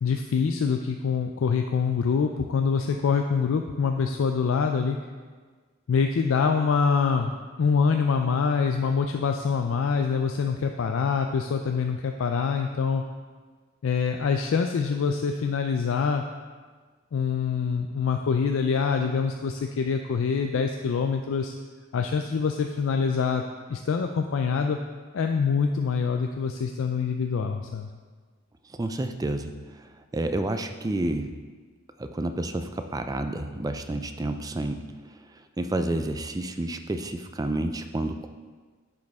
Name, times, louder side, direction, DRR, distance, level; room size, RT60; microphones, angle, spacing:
voice 1, 0.0-5.0 5.9-13.0 13.8-16.2 17.1-21.5 21.9-23.4 23.7-24.8 25.1-27.9, left 5 dB, 65° left, 4 dB, 0.4 m, -25 dB
voice 2, 28.7-31.3 32.0-34.9 35.6-38.3, right 1 dB, 15° right, 7 dB, 0.3 m, -30 dB
10.5 x 5.1 x 3.5 m, 1.5 s
head